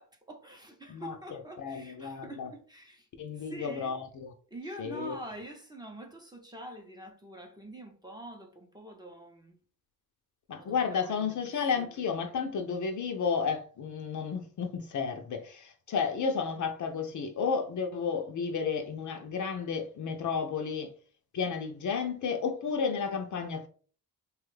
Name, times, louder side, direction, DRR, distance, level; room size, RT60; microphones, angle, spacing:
voice 1, 0.0-3.9 4.5-9.6 10.6-11.3 11.8-11.9, right 1 dB, 10° right, 0.7 m, -46 dB
voice 2, 0.9-2.5 3.2-4.3 4.8-5.2 10.5-20.9 21.3-23.7, left 6 dB, 50° left, 0.6 m, -32 dB
3.0 x 2.3 x 3.2 m
cardioid pair, 95°, 38 cm